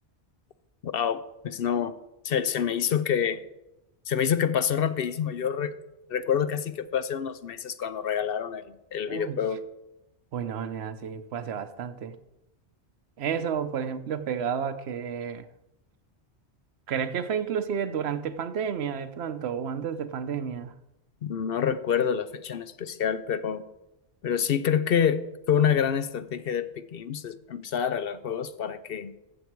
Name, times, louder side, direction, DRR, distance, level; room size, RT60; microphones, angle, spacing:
voice 1, 0.8-1.9 2.2-3.4 4.1-5.7 6.1-9.6 21.2-23.6 24.2-29.1, left 8 dB, 60° left, 0.8 m, -27 dB
voice 2, 9.1-9.4 10.3-12.2 13.2-15.5 16.9-20.7, right 7 dB, 70° right, 1.0 m, -31 dB
14.5 x 7.1 x 4.6 m
omnidirectional pair, 1.1 m